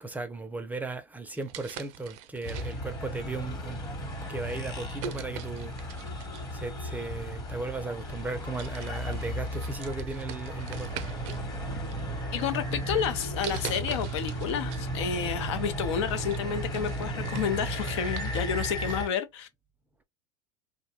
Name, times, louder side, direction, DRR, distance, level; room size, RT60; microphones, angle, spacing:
voice 1, 0.0-3.8 4.3-6.1 6.5-10.9, right 3 dB, 10° right, 0.4 m, -36 dB
sound 1, 1.4-3.0 3.7-4.0 5.0-6.6 7.6-7.7 8.2-8.3 8.6-11.5 11.8-12.5 13.4-14.9 15.2-15.3 15.8-19.1, right 8 dB, 65° right, 0.5 m, -43 dB
rickshaw ride fast speed smooth traffic pass by India, 2.4-19.1, equal, 30° left, 1.0 m, -35 dB
voice 2, 12.3-19.5, left 7 dB, 80° left, 0.6 m, -30 dB
2.6 x 2.2 x 2.8 m
supercardioid pair, 115°, 14 cm